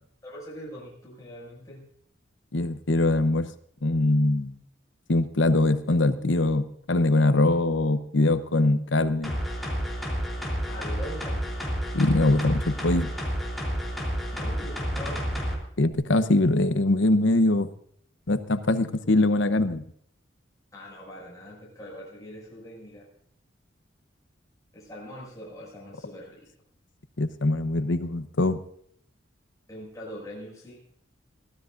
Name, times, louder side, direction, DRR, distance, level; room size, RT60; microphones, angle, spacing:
voice 1, 0.2-1.8 10.7-11.5 14.3-15.2 20.7-23.1 24.7-26.5 29.7-30.8, equal, 20° left, -5 dB, 6.2 m, -42 dB
voice 2, 2.5-3.5 3.8-4.6 5.1-9.4 11.9-13.1 15.8-17.7 18.3-19.8 27.2-28.6, left 2 dB, 75° left, 11 dB, 0.9 m, -22 dB
sound 1, 9.2-15.6 15.9-16.0, equal, ahead, 3.4 m, -30 dB
22.5 x 15.0 x 2.6 m, 0.66 s
head